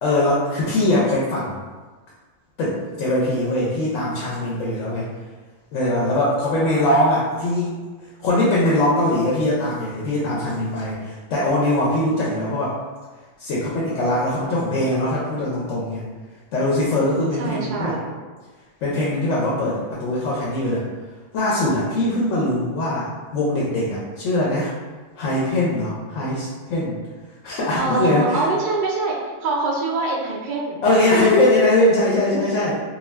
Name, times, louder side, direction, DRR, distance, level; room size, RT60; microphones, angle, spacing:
voice 1, 0.0-1.7 2.6-5.1 5.7-7.8 8.2-12.8 13.4-16.0 16.5-18.0 18.8-20.8 21.3-24.7 25.2-27.0 27.4-28.4 30.8-32.8, left 1 dB, 80° left, -5 dB, 0.9 m, -21 dB
voice 2, 17.4-18.1 27.8-29.2 29.4-30.8, right 3 dB, 65° right, -2 dB, 0.5 m, -24 dB
2.3 x 2.2 x 3.2 m, 1.3 s
omnidirectional pair, 1.3 m